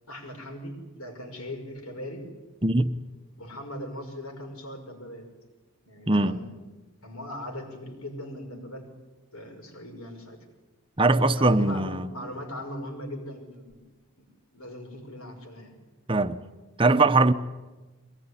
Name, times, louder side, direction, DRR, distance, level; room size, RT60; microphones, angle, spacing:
voice 1, 0.1-2.3 3.4-5.3 5.9-6.5 7.0-8.9 9.3-10.4 11.4-13.8 14.2-14.3 14.5-15.8, left 1 dB, 80° left, 5.8 m, -39 dB
voice 2, 2.6-2.9 6.1-6.4 11.0-12.1 16.1-16.4 16.8-17.3, right 2 dB, 25° right, 0.9 m, -21 dB
23.0 x 19.5 x 9.9 m
head